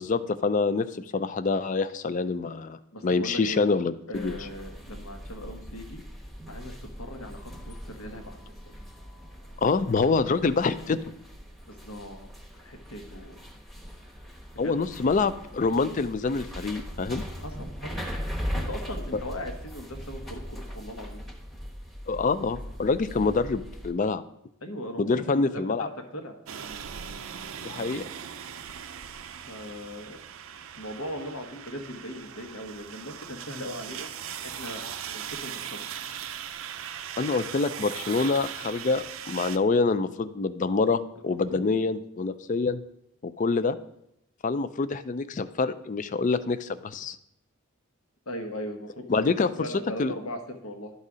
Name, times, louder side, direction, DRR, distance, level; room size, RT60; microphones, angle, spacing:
voice 1, 0.0-4.4 9.6-11.0 14.6-17.2 22.1-24.2 25.0-25.9 27.6-28.0 37.2-42.8 43.2-43.8 44.4-47.2 49.1-49.7 50.0-50.1, left 4 dB, 35° left, 13 dB, 0.3 m, -26 dB
voice 2, 2.9-3.7 4.1-6.0 6.5-8.4 11.7-12.3 12.6-13.4 14.6-14.7 17.4-18.0 18.5-21.2 24.6-26.4 29.5-30.2 30.8-34.1 34.4-35.8 41.5-41.8 48.3-49.2 49.6-50.9, left 1 dB, 75° left, 5 dB, 1.2 m, -39 dB
sound 1, 4.1-23.9, equal, ahead, 1.0 m, -39 dB
sound 2, 26.5-39.6, right 8 dB, 65° right, 0.5 m, -39 dB
11.5 x 4.1 x 4.9 m, 0.78 s
head